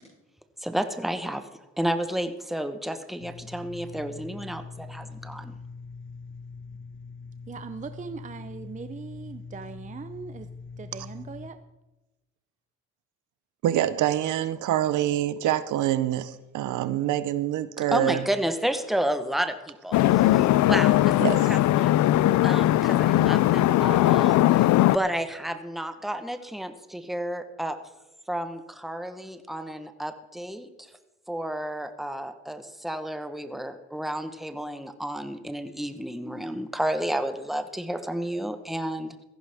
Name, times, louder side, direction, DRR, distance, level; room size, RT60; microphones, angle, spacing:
voice 1, 0.6-5.5 17.9-21.2 21.5-22.0 22.4-27.8 28.3-30.9 31.3-39.2, right 1 dB, ahead, 1.1 m, -31 dB
sound 1, 3.2-11.5, left 4 dB, 40° left, 1.1 m, -42 dB
voice 2, 7.5-10.5 10.8-11.6, right 5 dB, 25° right, 0.6 m, -40 dB
voice 3, 13.6-18.2 21.2-21.5, right 12 dB, 80° right, 0.8 m, -26 dB
sound 2, 19.9-25.0, left 15 dB, 70° left, 0.4 m, -20 dB
17.0 x 14.5 x 3.5 m
cardioid pair, 90°, 30 cm